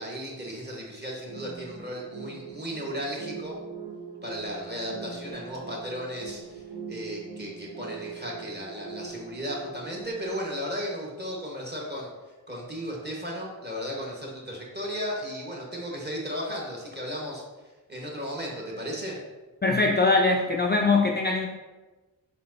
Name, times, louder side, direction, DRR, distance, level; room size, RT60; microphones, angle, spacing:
voice 1, 0.0-3.6 4.2-17.4 17.9-19.2, equal, 25° right, -2 dB, 1.4 m, -35 dB
sound 1, 1.3-10.6, right 5 dB, 70° right, 1.0 m, -41 dB
voice 2, 19.6-21.5, left 3 dB, 25° left, 1 dB, 0.4 m, -22 dB
4.3 x 3.8 x 2.7 m, 1.2 s
cardioid pair, 45°, 40 cm